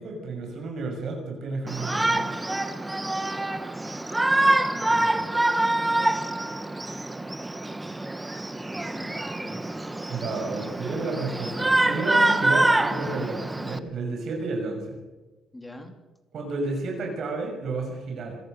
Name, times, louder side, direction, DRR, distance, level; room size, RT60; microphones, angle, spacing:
voice 1, 0.0-2.2 10.1-15.0 16.3-18.4, right 3 dB, 55° right, 1 dB, 6.1 m, -31 dB
Shout, 1.7-13.8, right 2 dB, 10° right, 1.2 m, -25 dB
voice 2, 4.7-5.4 8.7-9.6 15.5-16.0, left 1 dB, 10° left, 5 dB, 3.3 m, -44 dB
27.5 x 18.0 x 6.5 m, 1.1 s
cardioid pair, 130°, 0 cm